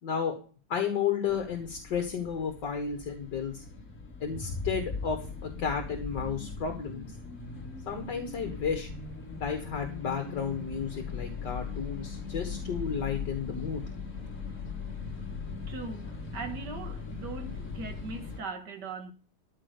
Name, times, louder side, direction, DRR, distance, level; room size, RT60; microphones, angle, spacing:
voice 1, 0.0-0.4 0.7-3.6 4.2-7.0 7.9-8.9 9.4-13.8, left 6 dB, 65° left, 2.2 m, -32 dB
sound 1, 1.3-18.4, left 5 dB, 40° left, 2.5 m, -39 dB
voice 2, 15.7-19.1, right 4 dB, 60° right, 2.2 m, -40 dB
14.0 x 5.9 x 6.5 m
omnidirectional pair, 2.1 m